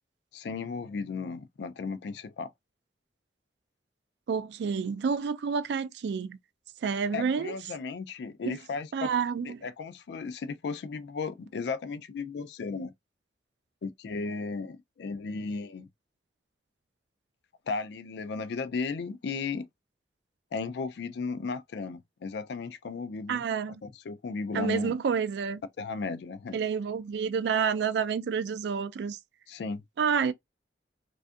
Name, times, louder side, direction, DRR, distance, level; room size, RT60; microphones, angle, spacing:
voice 1, 0.3-2.5 7.1-9.1 9.4-12.9 13.8-15.9 17.7-19.7 20.5-23.4 23.8-25.0 25.8-26.6 29.5-29.8, left 4 dB, 75° left, 0.3 m, -35 dB
voice 2, 4.3-6.4 6.8-7.6 8.5-8.6 8.9-9.6 23.3-23.8 24.5-25.6 26.5-29.2 30.0-30.3, right 6 dB, 75° right, 0.3 m, -29 dB
2.5 x 2.4 x 2.3 m
head